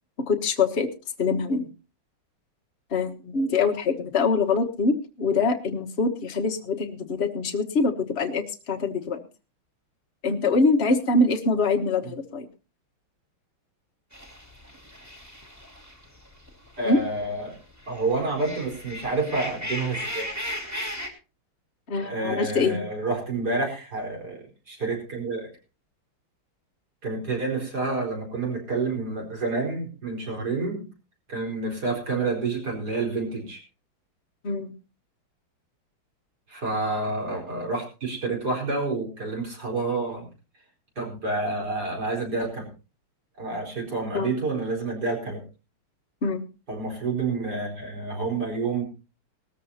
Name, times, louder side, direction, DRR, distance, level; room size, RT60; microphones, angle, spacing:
voice 1, 0.3-0.9 1.2-1.7 2.9-9.2 10.2-12.5 16.8-17.0 21.9-22.8 34.4-34.7 44.1-44.3 46.2-46.4, left 3 dB, 35° left, 4 dB, 1.3 m, -24 dB
sound 1, 14.1-17.0 17.4-21.1, left 1 dB, 5° right, 2.4 m, -36 dB
voice 2, 16.8-17.5 17.9-20.3 22.0-25.5 27.0-30.8 31.3-33.6 36.5-40.3 41.0-42.7 43.4-45.4 46.7-48.8, right 3 dB, 45° right, 0 dB, 4.8 m, -29 dB
19.5 x 14.0 x 2.8 m, 0.32 s
omnidirectional pair, 2.3 m